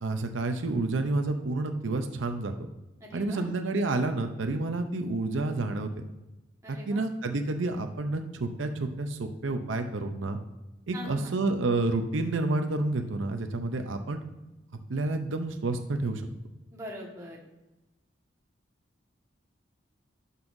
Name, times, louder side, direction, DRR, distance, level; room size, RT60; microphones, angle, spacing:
voice 1, 0.0-2.5 3.1-5.9 6.7-10.4 10.9-14.2 14.9-16.3, right 2 dB, 85° right, 6 dB, 0.6 m, -29 dB
voice 2, 3.0-3.5 6.6-7.0 10.9-11.4 16.7-17.4, equal, 15° right, -3 dB, 1.5 m, -42 dB
12.0 x 5.5 x 2.6 m, 1.0 s
head